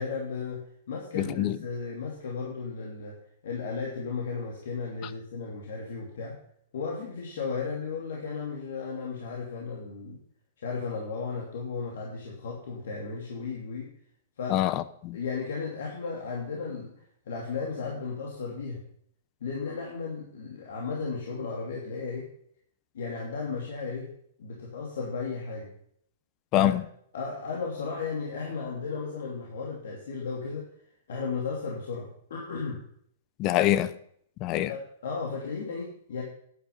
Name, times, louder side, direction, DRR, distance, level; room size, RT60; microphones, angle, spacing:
voice 1, 0.0-3.2 3.4-6.4 6.7-10.2 10.6-13.9 14.4-14.6 15.1-16.9 17.3-18.8 19.4-22.3 22.9-24.1 24.4-25.7 26.5-26.7 27.1-30.7 31.1-32.8 34.7-36.2, left 5 dB, 70° left, 2.9 m, -34 dB
voice 2, 1.2-1.6 14.5-15.2 26.5-26.8 33.4-33.9 34.4-34.7, left 13 dB, 40° left, 0.8 m, -25 dB
11.0 x 9.0 x 5.4 m
hypercardioid pair, 120°, 0 cm